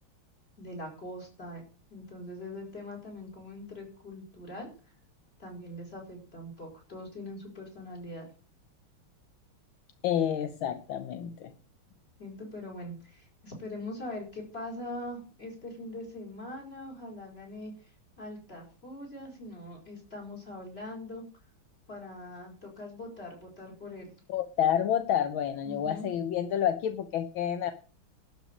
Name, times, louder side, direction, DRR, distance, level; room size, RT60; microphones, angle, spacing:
voice 1, 0.6-1.6 1.9-4.7 5.4-8.3 12.2-17.7 18.2-21.2 21.9-24.1 25.6-26.1, left 1 dB, 25° left, 0 dB, 5.2 m, -42 dB
voice 2, 10.0-11.5 24.3-27.7, left 9 dB, 70° left, 9 dB, 1.7 m, -29 dB
12.0 x 6.1 x 8.6 m, 0.37 s
omnidirectional pair, 2.3 m